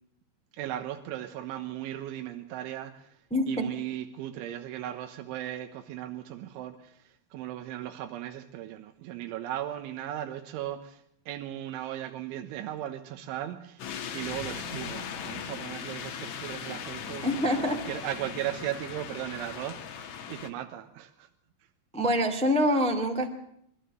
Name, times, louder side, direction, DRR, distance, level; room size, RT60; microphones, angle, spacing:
voice 1, 0.5-3.2 3.5-21.3, right 12 dB, 90° right, 7 dB, 3.5 m, -37 dB
sound 1, 13.8-20.5, left 7 dB, 55° left, 2.1 m, -38 dB
voice 2, 17.2-17.8 21.9-23.3, equal, 5° left, 6 dB, 0.5 m, -25 dB
25.5 x 12.5 x 9.0 m, 0.72 s
omnidirectional pair, 5.4 m